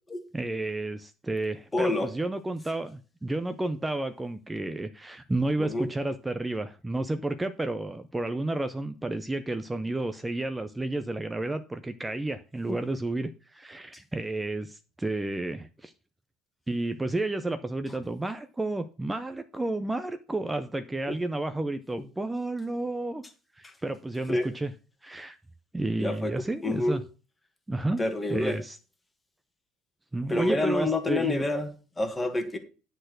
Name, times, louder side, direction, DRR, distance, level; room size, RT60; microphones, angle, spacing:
voice 1, 0.3-15.9 16.7-23.2 23.6-24.7 25.0-25.4 25.7-27.0 27.7-28.0 28.3-28.8 30.1-31.4, right 2 dB, 10° right, 9 dB, 0.5 m, -31 dB
voice 2, 1.7-2.1 5.6-5.9 12.7-12.8 21.1-21.2 24.3-24.5 26.0-26.3 26.6-27.0 28.0-28.6 30.3-32.6, left 2 dB, 10° left, 6 dB, 1.5 m, -28 dB
10.0 x 4.3 x 6.4 m, 0.35 s
cardioid pair, 160°, 0 cm